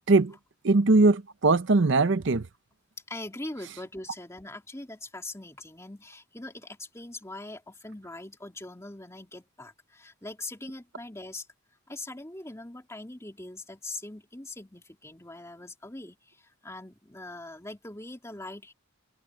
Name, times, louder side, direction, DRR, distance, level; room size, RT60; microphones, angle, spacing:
voice 1, 0.6-2.5, right 3 dB, 55° right, 0.7 m, -21 dB
voice 2, 3.1-11.5 11.9-18.7, left 2 dB, 15° left, 2.4 m, -42 dB
head